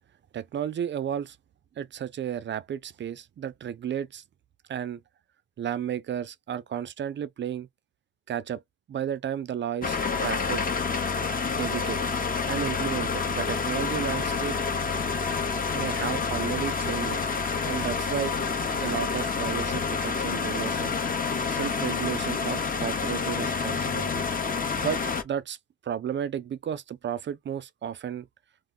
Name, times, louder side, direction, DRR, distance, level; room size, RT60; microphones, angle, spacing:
voice 1, 0.3-1.4 1.8-4.2 4.7-5.0 5.6-7.7 8.3-8.6 8.9-10.6 11.4-12.0 12.5-14.6 15.7-17.2 17.6-18.3 18.8-21.0 21.5-24.2 24.8-25.6 25.8-28.3, right 9 dB, 40° right, 0.4 m, -33 dB
sound 1, 9.8-25.2, left 5 dB, 30° left, 0.7 m, -28 dB
2.5 x 2.2 x 3.6 m
cardioid pair, 90°, 30 cm